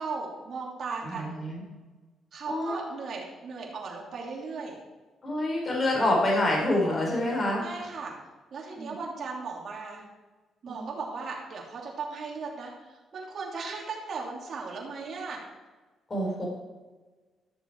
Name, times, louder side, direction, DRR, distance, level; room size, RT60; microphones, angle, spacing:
voice 1, 0.0-1.4 2.3-4.8 7.6-8.1 8.5-10.0 10.6-15.4, right 4 dB, 55° right, -2 dB, 3.0 m, -37 dB
voice 2, 1.0-1.6 2.5-2.8 5.2-7.6 8.8-8.9 10.7-10.9 16.1-16.5, left 1 dB, 30° left, -2 dB, 4.2 m, -27 dB
13.0 x 6.9 x 4.8 m, 1.3 s
cardioid pair, 90°, 0 cm